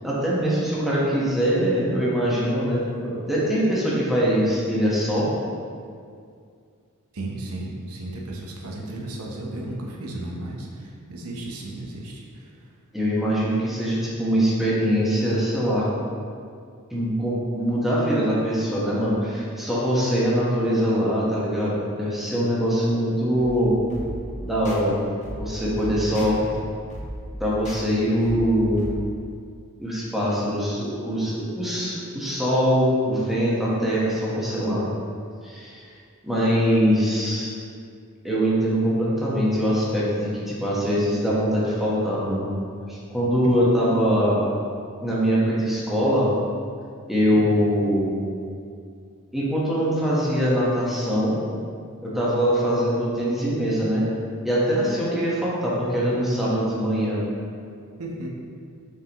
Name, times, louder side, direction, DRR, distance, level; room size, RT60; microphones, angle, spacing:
voice 1, 0.0-5.3 12.9-15.8 16.9-23.8 24.5-25.0 25.4-26.4 27.4-28.9 29.8-34.8 35.4-35.8 36.2-37.5 38.2-42.5 42.9-44.4 45.0-46.3 47.1-48.1 49.3-51.4 52.0-54.1 54.4-57.2, equal, ahead, -8 dB, 1.2 m, -23 dB
voice 2, 7.1-12.7 26.1-26.5 47.3-47.5 58.0-58.3, right 1 dB, 75° right, -2 dB, 0.8 m, -35 dB
sound 1, 23.3-29.0, equal, 35° left, 0.8 m, -36 dB
6.8 x 4.6 x 3.0 m, 2.2 s
head